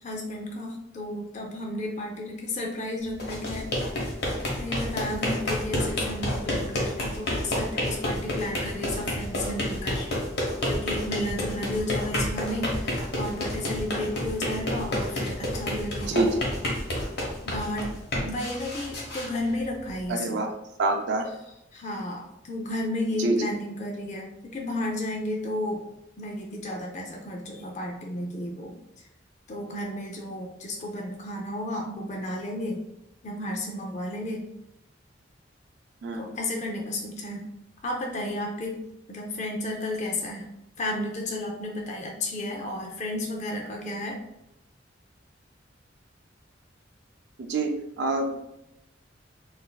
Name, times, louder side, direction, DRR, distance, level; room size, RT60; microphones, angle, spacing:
voice 1, 0.0-3.9 4.6-10.1 10.7-16.3 17.4-17.9 18.2-20.4 21.7-25.8 26.2-28.7 29.5-32.8 33.2-34.5 36.1-37.5 37.8-38.8 39.1-40.5 40.8-44.2, left 1 dB, 40° left, 0 dB, 0.5 m, -33 dB
sound 1, 3.1-20.1, left 1 dB, 55° left, 1.0 m, -30 dB
voice 2, 16.1-16.4 20.1-20.5 20.8-21.2 23.2-23.5 36.0-36.2 47.4-48.4, right 2 dB, 65° right, 3 dB, 0.4 m, -26 dB
3.9 x 2.6 x 2.2 m, 0.84 s
head